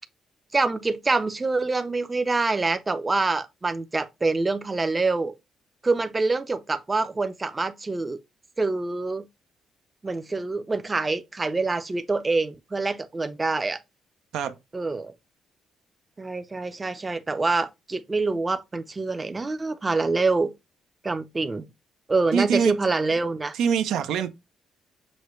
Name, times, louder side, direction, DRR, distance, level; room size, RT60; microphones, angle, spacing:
voice 1, 0.5-5.3 5.8-8.2 8.6-9.3 10.0-13.8 14.7-15.1 16.2-20.5 21.0-21.7 22.1-23.5, right 3 dB, 25° right, 0.5 m, -26 dB
voice 2, 22.3-22.8 23.6-24.3, right 7 dB, 85° right, 0.5 m, -24 dB
6.3 x 2.2 x 3.0 m
cardioid pair, 90°, 0 cm